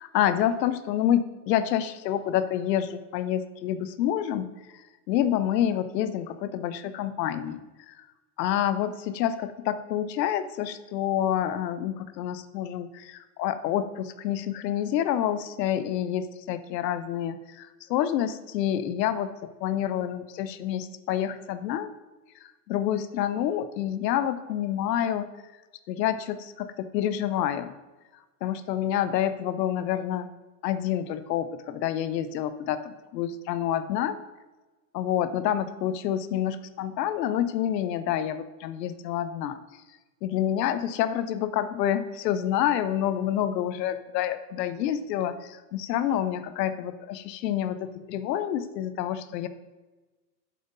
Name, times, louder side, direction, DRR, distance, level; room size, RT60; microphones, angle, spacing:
voice 1, 0.0-4.5 5.1-8.0 8.4-21.9 22.4-25.3 25.9-27.7 28.4-30.3 30.6-34.2 34.9-39.6 40.2-49.5, left 10 dB, 85° left, 13 dB, 0.7 m, -28 dB
7.6 x 5.4 x 3.9 m, 1.2 s
supercardioid pair, 160°, 49 cm